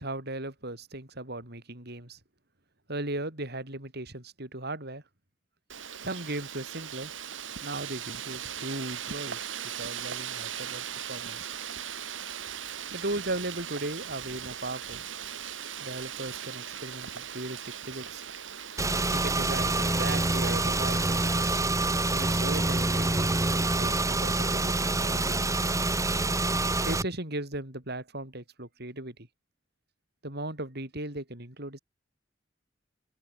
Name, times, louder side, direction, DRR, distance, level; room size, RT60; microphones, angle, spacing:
voice 1, 0.0-2.2 2.9-5.0 6.0-7.1 7.6-11.5 12.9-15.0 15.8-18.2 19.1-21.4 22.1-25.4 26.9-29.2 30.2-31.8, right 2 dB, 60° right, 7.0 m, -37 dB
Wind, 5.7-21.5, right 8 dB, 85° right, 2.9 m, -39 dB
Car / Engine, 18.8-27.0, right 2 dB, 15° right, 1.5 m, -26 dB
open air
head